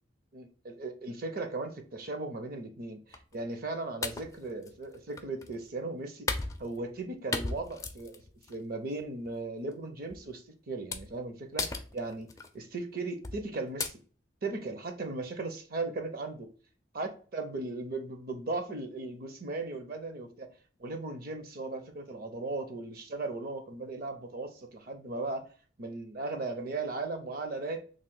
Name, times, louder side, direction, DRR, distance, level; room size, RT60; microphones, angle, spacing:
voice 1, 0.3-8.2 8.5-12.3 12.5-13.9 14.4-16.5 16.9-20.5 20.8-25.4 25.8-27.8, right 3 dB, 55° right, 0.7 m, -37 dB
sound 1, 3.1-3.4 4.0-5.6 6.3-7.1 7.3-8.6 9.0-9.3 10.1-10.3 10.9-11.2 11.6-12.5 13.2-13.5 13.8-13.9, left 3 dB, 20° left, 0.4 m, -36 dB
3.1 x 2.4 x 3.7 m
head